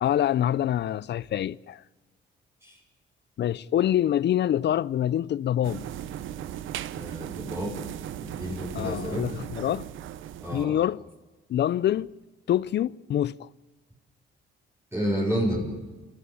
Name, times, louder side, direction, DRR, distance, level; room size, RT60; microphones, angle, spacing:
voice 1, 0.0-1.8 3.4-5.9 8.7-9.9 10.5-11.0 11.5-12.1 12.5-13.5, left 11 dB, 60° left, 0.6 m, -25 dB
sound 1, 5.6-10.7, right 11 dB, 80° right, 0.9 m, -37 dB
voice 2, 6.9-7.8 8.2-9.4 10.4-10.8 14.9-15.7, equal, 15° right, 7.2 m, -30 dB
29.5 x 14.0 x 8.6 m
cardioid pair, 90°, 20 cm